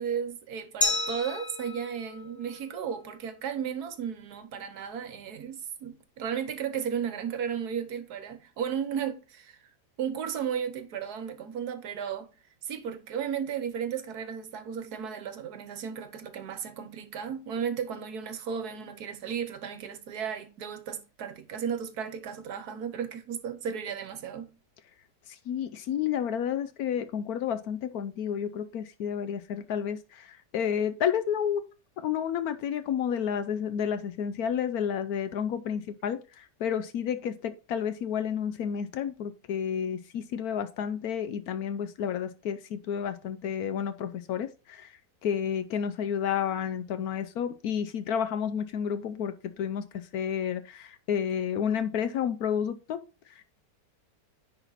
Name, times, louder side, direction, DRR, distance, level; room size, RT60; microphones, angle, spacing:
voice 1, 0.0-9.6 10.0-12.3 12.6-24.5, right 8 dB, 65° right, 1.4 m, -34 dB
Glass, 0.8-3.5, left 2 dB, 20° left, 0.6 m, -33 dB
voice 2, 25.3-31.7 32.0-53.0 53.3-53.4, left 8 dB, 70° left, 1.0 m, -31 dB
10.0 x 4.1 x 4.0 m
omnidirectional pair, 1.8 m